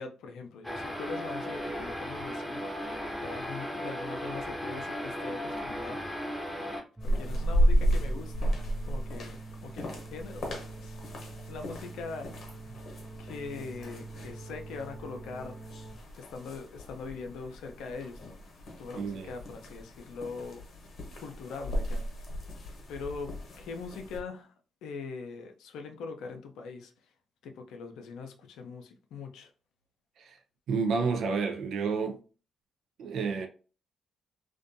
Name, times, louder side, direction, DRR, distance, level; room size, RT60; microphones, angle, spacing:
voice 1, 0.0-2.7 3.2-6.0 7.0-8.5 8.8-11.0 11.4-12.4 13.2-15.6 16.2-18.4 18.8-20.6 21.2-22.3 22.9-24.5 24.8-26.9 27.4-29.5, left 4 dB, 75° left, 0.4 m, -42 dB
sound 1, 0.6-6.8, equal, 5° left, 0.8 m, -36 dB
sound 2, 7.0-24.2, equal, 60° left, 0.8 m, -33 dB
sound 3, 7.0-16.0, right 3 dB, 10° right, 0.5 m, -46 dB
voice 2, 18.9-19.3 30.2-30.4 30.7-32.2 33.0-33.5, right 5 dB, 70° right, 0.4 m, -30 dB
2.5 x 2.2 x 2.5 m
hypercardioid pair, 50°, 0 cm